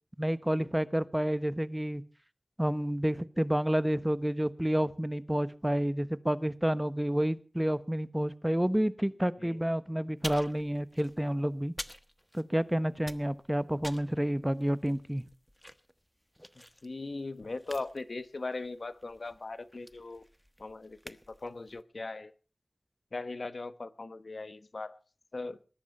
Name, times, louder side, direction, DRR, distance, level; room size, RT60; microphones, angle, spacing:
voice 1, 0.2-2.0 2.6-11.7 12.3-15.2, equal, 15° right, 14 dB, 1.1 m, -29 dB
sound 1, 10.2-12.7 12.9-21.8, equal, 5° left, 1.3 m, -48 dB
voice 2, 16.8-20.2 20.6-22.3 23.1-25.0 25.3-25.6, left 3 dB, 75° left, 13 dB, 1.1 m, -39 dB
20.0 x 11.0 x 5.5 m, 0.38 s
wide cardioid pair, 40°, 0 cm